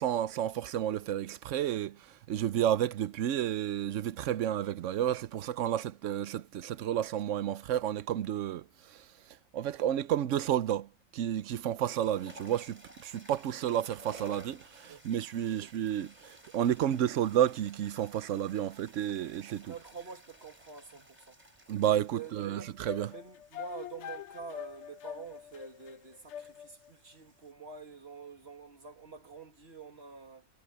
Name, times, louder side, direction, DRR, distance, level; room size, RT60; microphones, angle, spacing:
voice 1, 0.0-9.1 9.5-19.7 21.7-23.1, right 10 dB, 85° right, 1.0 m, -31 dB
sound 1, 10.7-11.0 11.7-27.5, right 1 dB, 35° right, 3.9 m, -56 dB
voice 2, 19.7-21.4 22.1-22.7 23.1-30.5, right 5 dB, 55° right, 2.7 m, -47 dB
sound 2, 22.4-26.9, left 9 dB, 75° left, 0.9 m, -45 dB
omnidirectional pair, 1.3 m